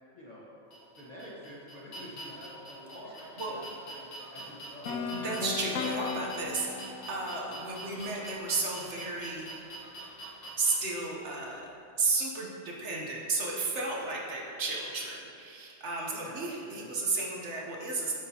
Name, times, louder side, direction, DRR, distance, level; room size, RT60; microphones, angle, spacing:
voice 1, 0.1-0.4 1.0-5.0 16.1-16.9, equal, 35° left, -7 dB, 1.4 m, -48 dB
sound 1, 0.7-10.7, right 1 dB, 60° left, 1.5 m, -45 dB
sound 2, 4.9-8.8, left 5 dB, 85° left, 0.9 m, -37 dB
voice 2, 5.1-9.6 10.6-11.7 12.0-18.1, right 3 dB, 70° right, -2 dB, 1.2 m, -33 dB
8.1 x 5.7 x 2.8 m, 2.6 s
omnidirectional pair, 1.2 m